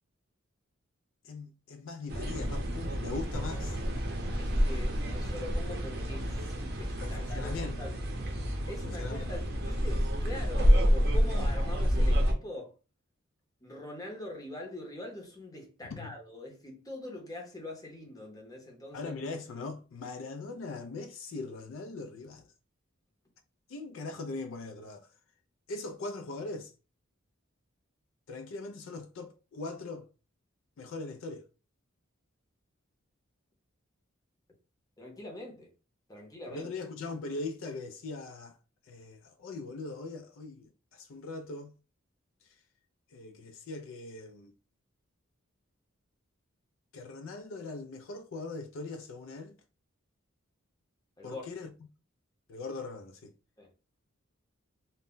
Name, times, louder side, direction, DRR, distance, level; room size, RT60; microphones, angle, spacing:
voice 1, 1.2-3.8 7.0-7.9 8.7-9.3 15.8-16.2 18.9-22.5 23.7-25.1 25.7-26.7 28.3-30.1 30.8-31.5 36.5-38.6 38.8-41.7 42.4-42.5 43.1-44.5 46.9-49.6 51.2-51.7 52.5-53.3, left 3 dB, 70° left, 0.3 m, -40 dB
sound 1, 2.1-12.3, equal, 50° right, 0.6 m, -29 dB
voice 2, 4.4-8.0 8.7-12.7 13.6-19.1 35.0-35.7 36.1-36.7 51.2-51.4 53.6-53.7, left 1 dB, 15° left, 0.7 m, -43 dB
2.1 x 2.1 x 3.7 m
head